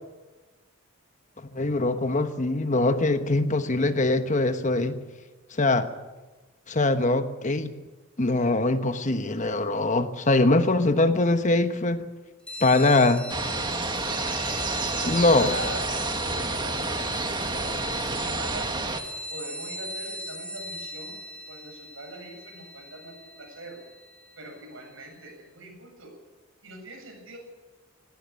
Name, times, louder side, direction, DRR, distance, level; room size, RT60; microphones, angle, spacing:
voice 1, 1.5-5.0 5.6-5.9 6.7-7.7 8.2-12.1 12.6-13.2 15.0-15.6, left 2 dB, 35° left, 9 dB, 1.2 m, -22 dB
sound 1, 12.5-24.6, equal, 5° left, 1.6 m, -38 dB
sound 2, 13.3-19.0, right 3 dB, 20° right, 1.7 m, -30 dB
voice 2, 14.9-15.8 16.2-18.7 19.3-21.2 21.5-23.8 24.4-26.1 26.6-27.4, right 2 dB, 70° right, 2 dB, 8.0 m, -42 dB
19.0 x 17.0 x 8.7 m, 1.2 s
head